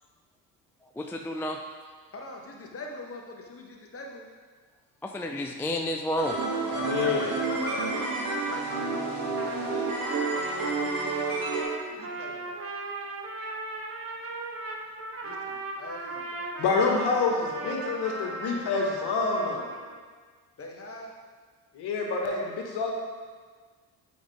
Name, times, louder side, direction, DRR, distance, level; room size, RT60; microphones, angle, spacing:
voice 1, 1.0-1.6 5.0-6.4, left 1 dB, 5° left, 3 dB, 0.4 m, -30 dB
voice 2, 2.1-4.3 6.7-7.9 8.5-10.0 10.5-11.1 11.9-12.5 15.2-16.5 20.6-21.1, left 2 dB, 30° left, 0 dB, 1.4 m, -41 dB
sound 1, 6.2-11.6, right 3 dB, 45° right, 1.9 m, -30 dB
voice 3, 6.8-7.2 16.6-19.6 21.7-22.9, left 4 dB, 55° left, 0 dB, 1.5 m, -27 dB
Trumpet, 9.3-20.0, right 2 dB, 30° right, 1.1 m, -37 dB
7.1 x 5.2 x 3.5 m, 1.5 s
hypercardioid pair, 50°, 46 cm